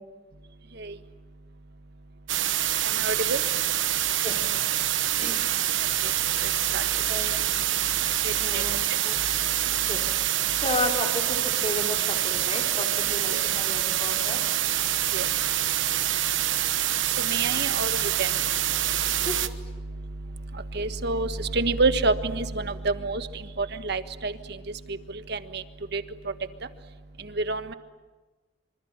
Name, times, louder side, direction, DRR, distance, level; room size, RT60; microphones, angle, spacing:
sound 1, 2.3-19.5, right 12 dB, 85° right, 1.2 m, -26 dB
voice 1, 3.0-3.4 6.7-6.8 8.5-8.6 13.3-13.4 15.1-15.3 17.3-18.3 20.7-23.3 23.6-24.3 25.3-25.6 25.9-26.0 27.4-27.7, right 3 dB, 60° right, 10 dB, 1.4 m, -27 dB
voice 2, 4.2-4.7 5.2-5.4 7.1-7.4 8.4-9.2 9.9-10.0 10.6-14.4 19.3-19.4, left 2 dB, 30° left, 3 dB, 3.8 m, -33 dB
26.0 x 25.5 x 8.9 m, 1.2 s
head